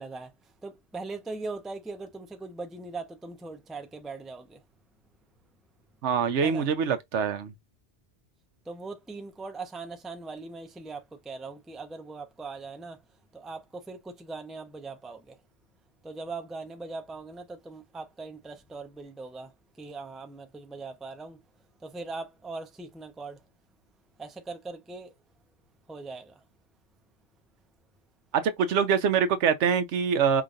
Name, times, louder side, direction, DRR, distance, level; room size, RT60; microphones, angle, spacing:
voice 1, 0.0-4.6 6.4-6.7 8.6-13.0 13.3-15.4 16.0-21.4 21.8-23.5 24.2-25.1 25.9-26.4, right 3 dB, ahead, 0.4 m, -40 dB
voice 2, 6.0-7.5 28.3-30.4, right 6 dB, 90° right, 1.0 m, -24 dB
5.0 x 2.5 x 2.5 m
omnidirectional pair, 1.1 m